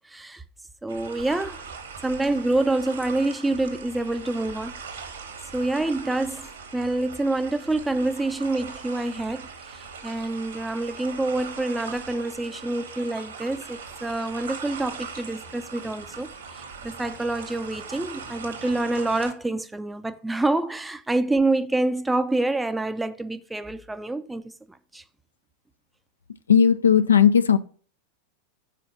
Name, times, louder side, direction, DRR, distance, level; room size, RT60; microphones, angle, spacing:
voice 1, 0.1-0.4 0.8-1.6 2.0-4.8 5.5-25.0, right 2 dB, 5° right, 0.5 m, -27 dB
sound 1, 0.9-19.3, right 5 dB, 65° right, 1.5 m, -40 dB
voice 2, 26.5-27.6, left 8 dB, 70° left, 0.5 m, -16 dB
5.8 x 4.3 x 5.6 m
figure-of-eight pair, 90°, 0 cm